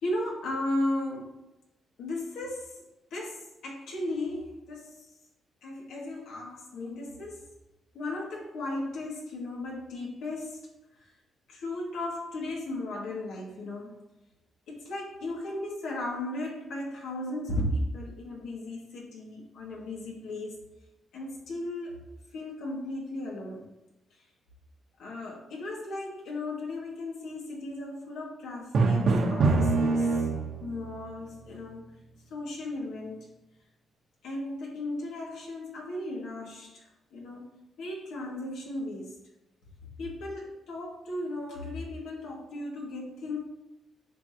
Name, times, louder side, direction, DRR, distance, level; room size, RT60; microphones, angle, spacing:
voice 1, 0.0-1.4 2.0-2.8 3.1-5.0 5.6-7.4 7.9-10.6 11.5-14.0 14.7-20.6 21.1-23.7 25.0-30.1 30.6-31.9 32.3-33.3 34.2-37.4 37.8-39.2 40.0-43.4, left 1 dB, 85° left, -2 dB, 2.4 m, -36 dB
Drum, 28.7-30.8, right 3 dB, 60° right, 1.2 m, -24 dB
9.3 x 5.8 x 3.0 m, 0.94 s
cardioid pair, 100°, 0 cm